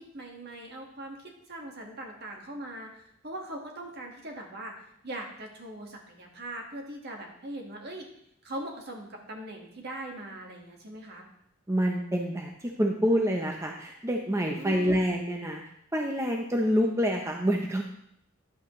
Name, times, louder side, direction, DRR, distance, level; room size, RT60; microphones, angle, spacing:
voice 1, 0.0-8.1 8.4-11.3 14.6-15.0, right 1 dB, 50° right, 1 dB, 1.6 m, -41 dB
voice 2, 11.7-15.6 15.9-17.8, equal, 15° right, 1 dB, 0.7 m, -27 dB
10.5 x 8.1 x 3.1 m, 0.71 s
head